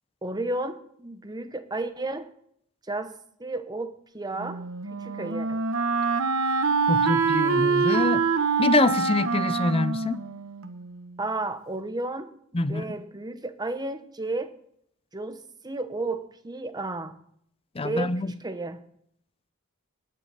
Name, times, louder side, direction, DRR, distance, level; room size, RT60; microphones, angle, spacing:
voice 1, 0.2-2.3 2.9-5.6 11.2-14.5 15.1-17.2 17.8-18.1 18.4-18.8, right 2 dB, 20° right, 1.0 m, -33 dB
Wind instrument woodwind instrument, 4.4-11.2, right 5 dB, 75° right, 1.1 m, -25 dB
voice 2, 6.9-8.2 8.6-10.2 12.5-12.8 17.8-18.3, left 3 dB, 25° left, 0.5 m, -25 dB
19.0 x 9.3 x 4.1 m
head